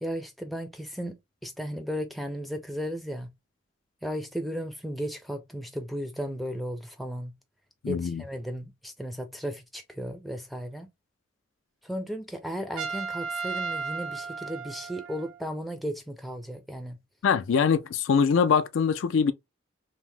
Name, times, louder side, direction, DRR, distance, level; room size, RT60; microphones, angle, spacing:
voice 1, 0.0-1.2 1.4-3.3 4.0-7.3 7.9-10.9 11.8-17.0, equal, ahead, 0.4 m, -35 dB
voice 2, 7.8-8.2 17.2-19.3, left 6 dB, 75° left, 0.4 m, -23 dB
Trumpet, 12.8-15.4, right 5 dB, 80° right, 0.5 m, -34 dB
2.7 x 2.0 x 3.1 m
head